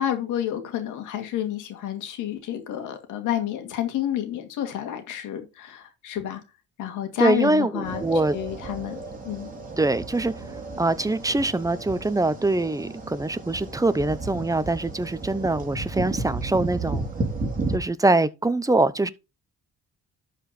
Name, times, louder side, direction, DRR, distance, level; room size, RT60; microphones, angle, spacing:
voice 1, 0.0-6.4 6.8-8.0 8.3-9.5, left 10 dB, 90° left, 2.3 m, -29 dB
voice 2, 7.2-8.4 9.8-10.3 10.8-17.1 17.7-19.1, right 2 dB, 10° right, 0.8 m, -23 dB
sound 1, 7.8-17.8, right 3 dB, 25° right, 3.5 m, -33 dB
12.0 x 4.9 x 4.3 m
cardioid pair, 90°, 30 cm